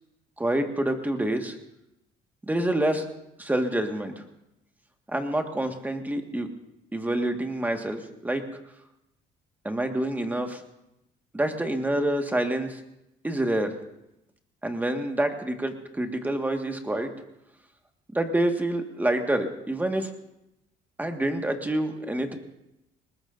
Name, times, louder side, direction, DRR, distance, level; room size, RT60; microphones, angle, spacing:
voice 1, 0.4-1.6 2.4-3.1 3.4-4.2 5.1-6.5 6.9-8.4 9.7-10.6 11.3-12.8 13.2-13.8 14.6-17.1 18.1-20.1 21.0-22.4, right 1 dB, 10° right, 4 dB, 1.7 m, -27 dB
20.0 x 20.0 x 2.6 m, 0.88 s
cardioid pair, 110°, 17 cm